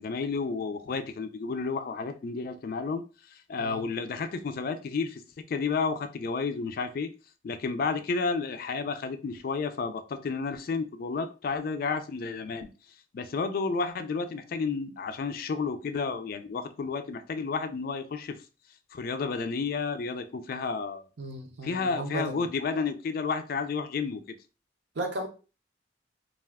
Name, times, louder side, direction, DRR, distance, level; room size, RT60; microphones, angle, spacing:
voice 1, 0.0-3.0 3.3-7.1 7.4-12.7 13.1-18.4 18.9-21.0 21.6-24.2, left 4 dB, 55° left, 0.3 m, -31 dB
voice 2, 21.2-22.4 25.0-25.3, right 1 dB, 70° right, 0.7 m, -35 dB
2.4 x 2.3 x 3.4 m
head